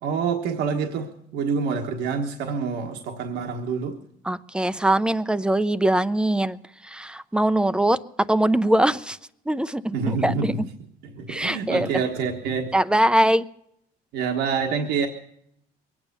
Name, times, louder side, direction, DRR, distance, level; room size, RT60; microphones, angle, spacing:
voice 1, 0.0-4.0 9.9-10.6 11.1-12.7 14.1-15.1, right 5 dB, 80° right, 2 dB, 1.4 m, -27 dB
voice 2, 4.2-6.6 6.8-8.0 8.3-9.2 9.5-10.7 11.3-11.9 12.7-13.4, right 1 dB, 5° right, 14 dB, 0.5 m, -22 dB
22.0 x 9.0 x 6.8 m, 0.74 s
cardioid pair, 110°, 17 cm